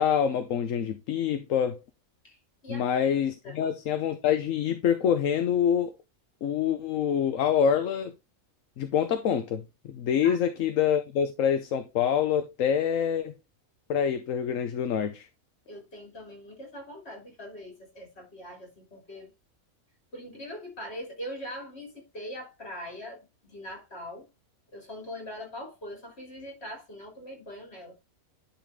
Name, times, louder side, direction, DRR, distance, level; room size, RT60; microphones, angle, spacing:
voice 1, 0.0-1.8 2.7-5.9 6.4-8.1 8.8-13.3 13.9-15.3, left 8 dB, 70° left, 1.1 m, -26 dB
voice 2, 2.2-2.8 3.4-3.6 10.2-10.4 15.7-19.3 20.1-24.3 24.7-27.9, equal, 50° left, 3.5 m, -42 dB
10.5 x 4.2 x 3.6 m
omnidirectional pair, 1.4 m